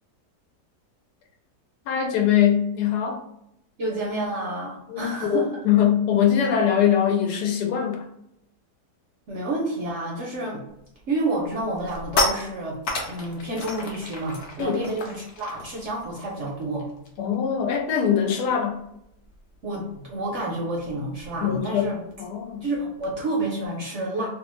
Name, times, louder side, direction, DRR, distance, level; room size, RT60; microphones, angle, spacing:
voice 1, 1.9-3.2 4.9-8.0 14.6-14.8 17.2-18.8 21.4-21.8 22.2-22.6, left 9 dB, 85° left, 2 dB, 1.2 m, -22 dB
voice 2, 3.8-5.5 9.3-10.6 11.1-12.8 13.1-16.9 19.6-22.0 22.6-24.3, right 2 dB, 65° right, -2 dB, 0.7 m, -29 dB
sound 1, 10.8-11.0 11.4-17.3 17.6-17.9 18.1-23.1, left 2 dB, 60° left, 0.7 m, -33 dB
2.8 x 2.1 x 3.0 m, 0.81 s
omnidirectional pair, 1.7 m